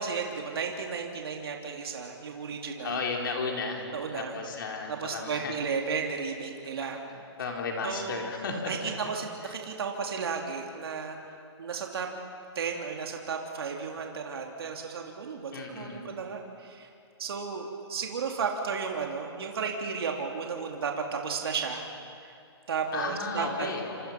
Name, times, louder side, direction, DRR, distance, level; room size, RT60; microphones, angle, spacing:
voice 1, 0.0-3.0 3.9-4.4 4.9-7.0 7.8-8.3 8.7-11.2 11.6-12.1 12.5-16.9 17.2-21.9 22.2-22.4 22.7-23.7, right 5 dB, 60° right, 1 dB, 3.0 m, -34 dB
voice 2, 2.8-5.5 6.8-8.6 15.5-16.0 22.9-24.1, left 4 dB, 50° left, 0 dB, 4.5 m, -34 dB
28.0 x 27.0 x 6.0 m, 2.4 s
hypercardioid pair, 170°, 14 cm